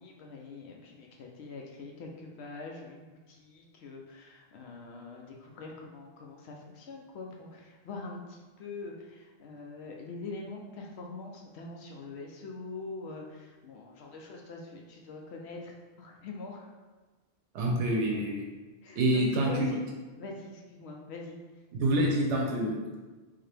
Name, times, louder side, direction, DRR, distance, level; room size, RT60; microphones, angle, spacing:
voice 1, 0.0-16.7 18.8-19.8 20.2-21.4, left 3 dB, 70° left, 0 dB, 0.8 m, -44 dB
voice 2, 17.5-18.5 19.0-19.7 21.7-23.0, right 1 dB, 85° right, -1 dB, 0.9 m, -27 dB
3.7 x 2.7 x 3.3 m, 1.3 s
omnidirectional pair, 1.2 m